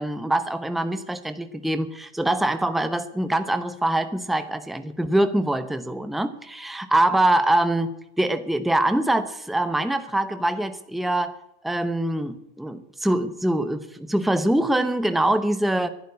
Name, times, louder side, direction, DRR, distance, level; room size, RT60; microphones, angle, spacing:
voice 1, 0.0-11.3 11.6-15.9, right 1 dB, ahead, 10 dB, 0.9 m, -24 dB
11.5 x 11.5 x 9.5 m, 0.80 s
hypercardioid pair, 115°, 33 cm